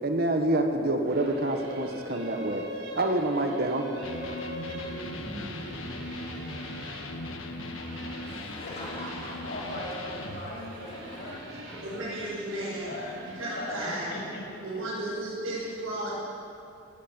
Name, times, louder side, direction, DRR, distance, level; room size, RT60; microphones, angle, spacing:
voice 1, 0.0-2.6 2.9-3.9, right 1 dB, 50° right, 4 dB, 1.4 m, -27 dB
sound 1, 1.0-14.7, right 1 dB, 65° right, 4.3 m, -42 dB
Electric guitar, 4.0-10.4, left 2 dB, 80° left, 1.5 m, -39 dB
Laughter, 8.2-12.2, left 1 dB, 30° left, 3.6 m, -45 dB
voice 2, 8.6-11.9 12.5-14.4 14.7-14.8 15.5-15.7, left 1 dB, 55° left, -3 dB, 6.9 m, -40 dB
voice 3, 11.8-12.9 13.4-14.1 14.6-16.1, right 1 dB, 90° right, -9 dB, 6.9 m, -34 dB
18.0 x 16.5 x 9.0 m, 2.7 s
head